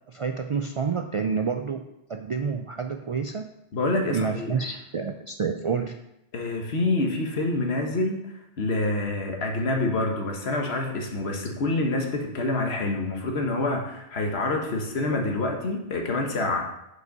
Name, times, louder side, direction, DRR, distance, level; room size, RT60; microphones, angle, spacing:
voice 1, 0.1-1.8 2.1-3.5 4.1-6.0, right 5 dB, 60° right, 5 dB, 0.3 m, -28 dB
voice 2, 3.7-4.6 6.3-8.2 8.6-16.6, left 2 dB, 85° left, 2 dB, 1.4 m, -27 dB
6.4 x 5.2 x 5.2 m, 0.86 s
omnidirectional pair, 1.0 m